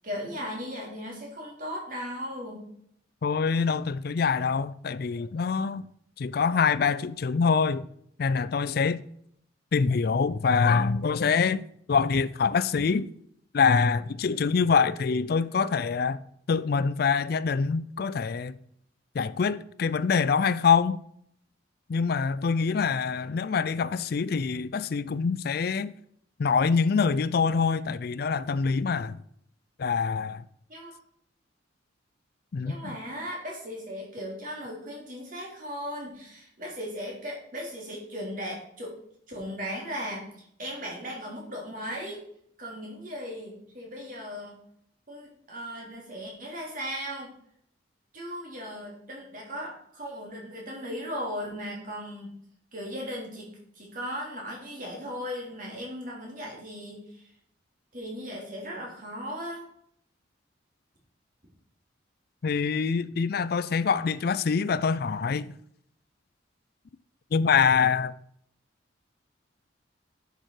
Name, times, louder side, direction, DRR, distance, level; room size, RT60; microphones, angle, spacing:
voice 1, 0.0-2.6 30.7-30.9 32.6-38.9 39.3-42.2 42.6-44.5 45.1-47.3 48.1-52.3 52.7-53.5 53.8-57.3 57.9-59.7, equal, 45° right, 3.6 m, -37 dB
voice 2, 3.2-5.8 6.2-7.8 8.2-9.0 9.7-13.1 13.5-16.2 16.5-18.6 19.1-21.0 21.9-25.9 26.4-29.2 29.8-30.4 32.5-33.0 62.4-65.5 67.3-68.1, left 5 dB, 55° left, 0.4 m, -25 dB
10.0 x 6.6 x 4.9 m
head